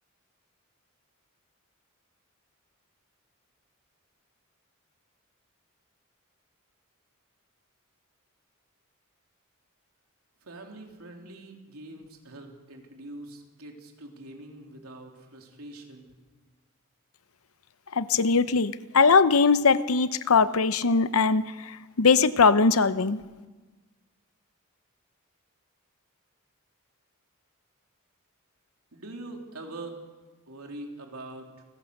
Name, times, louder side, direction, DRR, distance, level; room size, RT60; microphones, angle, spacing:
voice 1, 10.4-16.1 28.9-29.9 30.5-31.6, right 2 dB, 90° right, 2 dB, 3.4 m, -43 dB
voice 2, 17.9-21.7 22.0-23.2, left 4 dB, 75° left, 14 dB, 0.8 m, -21 dB
29.0 x 14.5 x 6.5 m, 1.3 s
head